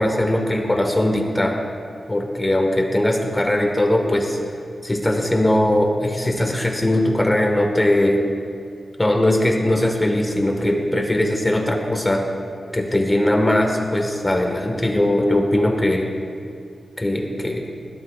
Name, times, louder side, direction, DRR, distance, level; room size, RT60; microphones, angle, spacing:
voice 1, 0.0-1.6 2.1-4.4 4.8-8.2 9.0-12.2 12.7-16.1 17.0-17.7, left 1 dB, 20° left, 2 dB, 1.6 m, -20 dB
20.0 x 16.5 x 2.5 m, 2.4 s
cardioid pair, 75°, 0 cm